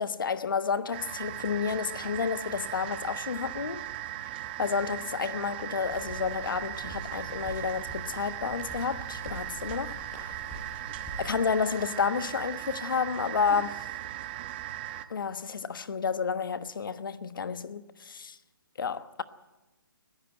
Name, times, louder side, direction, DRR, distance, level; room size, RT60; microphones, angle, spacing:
voice 1, 0.0-3.9 4.6-10.0 11.2-13.9 15.1-18.4 18.8-19.2, left 6 dB, 70° left, 1.2 m, -30 dB
sound 1, 0.9-15.0, right 13 dB, 30° right, 1.1 m, -38 dB
sound 2, 5.9-11.4, right 1 dB, 5° left, 6.1 m, -44 dB
21.5 x 15.5 x 9.0 m
hypercardioid pair, 160°, 12 cm